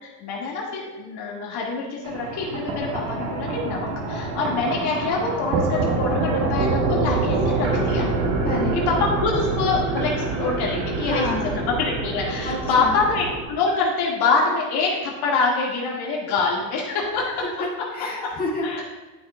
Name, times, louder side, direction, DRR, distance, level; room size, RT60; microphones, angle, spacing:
voice 1, 0.0-8.1 8.7-17.4 18.6-18.8, left 4 dB, 55° left, -2 dB, 2.0 m, -25 dB
sound 1, 2.0-13.4, right 3 dB, 65° right, 1.8 m, -25 dB
voice 2, 8.4-8.8 11.0-11.6 12.4-13.0 17.4-18.8, left 2 dB, 20° left, -5 dB, 1.9 m, -29 dB
11.0 x 6.1 x 2.3 m, 1.2 s
supercardioid pair, 125°, 46 cm